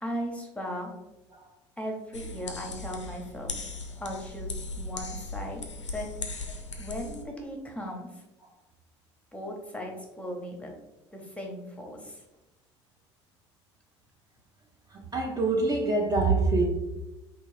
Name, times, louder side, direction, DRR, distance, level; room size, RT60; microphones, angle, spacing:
voice 1, 0.0-0.9 1.8-3.5 4.0-5.6 5.9-6.1 6.8-8.2 9.3-10.7 11.1-12.2, equal, 10° left, 1 dB, 0.9 m, -37 dB
sound 1, 2.1-7.2, left 3 dB, 90° left, 0.4 m, -38 dB
voice 2, 14.9-16.7, right 3 dB, 25° right, 0 dB, 0.6 m, -25 dB
3.5 x 2.6 x 3.1 m, 0.96 s
figure-of-eight pair, 65°, 15 cm